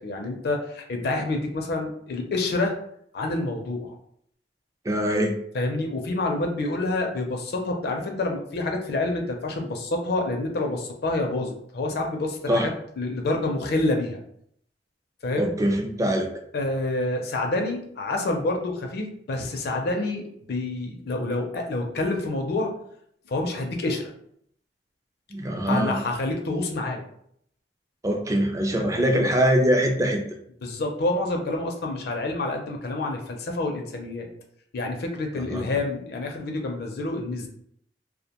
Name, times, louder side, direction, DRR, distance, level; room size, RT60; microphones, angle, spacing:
voice 1, 0.0-2.7 3.1-4.0 5.5-14.2 15.2-15.5 16.5-22.7 23.3-24.0 25.7-27.0 28.9-29.3 30.6-34.3 34.7-37.5, left 2 dB, 60° left, 3 dB, 0.5 m, -28 dB
voice 2, 4.9-5.3 12.5-12.7 15.4-16.3 25.3-26.0 28.0-30.2 35.4-35.7, equal, 20° right, 3 dB, 0.3 m, -23 dB
2.4 x 2.1 x 2.8 m, 0.69 s
head